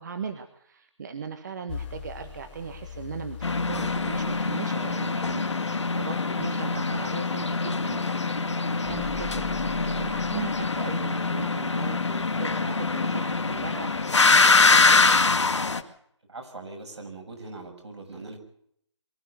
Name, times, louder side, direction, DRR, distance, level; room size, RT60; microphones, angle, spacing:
voice 1, 0.0-15.4, right 6 dB, 40° right, 8 dB, 1.5 m, -38 dB
sound 1, 1.7-4.5 8.8-10.9, left 5 dB, 20° left, 2.6 m, -41 dB
sound 2, 3.4-15.8, left 4 dB, 70° left, 2.1 m, -24 dB
voice 2, 16.3-18.4, right 3 dB, 65° right, 5 dB, 6.9 m, -41 dB
23.5 x 14.0 x 8.1 m, 0.68 s
figure-of-eight pair, 160°, 15 cm